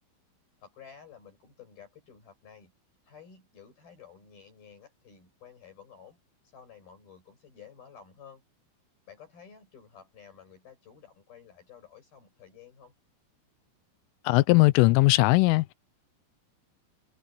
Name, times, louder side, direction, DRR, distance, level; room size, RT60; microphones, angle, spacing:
voice 1, 0.6-2.7 3.0-6.2 6.5-8.4 9.1-12.9, left 7 dB, 50° left, 7.6 m, -52 dB
voice 2, 14.3-15.7, left 21 dB, 90° left, 3.3 m, -20 dB
omnidirectional pair, 5.6 m